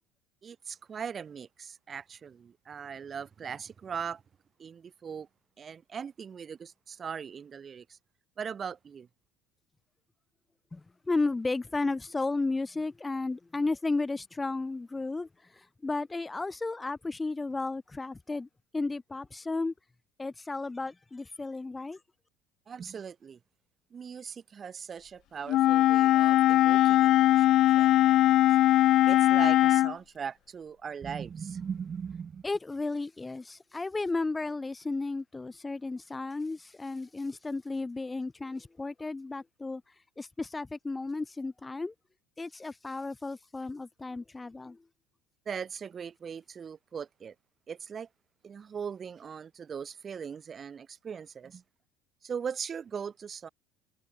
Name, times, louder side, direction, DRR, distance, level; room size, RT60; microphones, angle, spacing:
voice 1, 0.4-4.2 4.6-5.3 5.6-8.0 8.4-9.1 22.7-23.4 23.9-28.4 29.1-32.4 45.5-47.3 47.7-48.1 48.4-51.6 52.2-53.5, right 7 dB, 35° right, 7.0 m, -39 dB
voice 2, 10.7-18.5 18.7-19.7 20.2-22.0 32.4-39.8 40.2-41.9 42.4-44.8, left 3 dB, 15° left, 2.7 m, -33 dB
Wind instrument woodwind instrument, 25.5-29.9, left 14 dB, 55° left, 0.4 m, -21 dB
hypercardioid pair, 70°, 0 cm